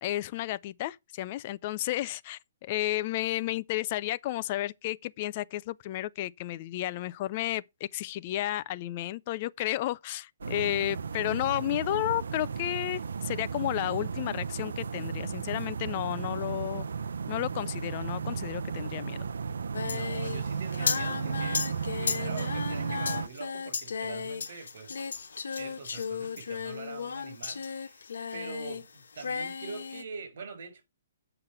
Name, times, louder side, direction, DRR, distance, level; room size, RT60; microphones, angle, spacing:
voice 1, 0.0-7.6 7.9-16.9 17.3-19.3, left 15 dB, 30° left, 0.4 m, -32 dB
sound 1, 10.4-23.3, right 6 dB, 90° right, 0.7 m, -34 dB
Singing, 19.7-28.9 29.1-30.0, left 5 dB, 90° left, 1.2 m, -34 dB
voice 2, 19.8-21.7 22.0-25.0 25.6-28.0 28.3-30.8, right 5 dB, 55° right, 6.3 m, -43 dB
8.0 x 5.9 x 5.5 m
hypercardioid pair, 165°, 0 cm